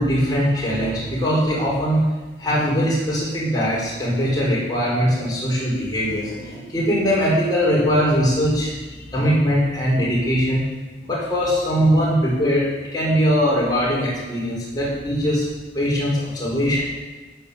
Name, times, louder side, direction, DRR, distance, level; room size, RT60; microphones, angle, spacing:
voice 1, 0.0-2.0 2.4-10.6 11.0-15.4 15.7-16.8, equal, 20° left, -6 dB, 4.6 m, -21 dB
13.5 x 8.1 x 7.1 m, 1.2 s
head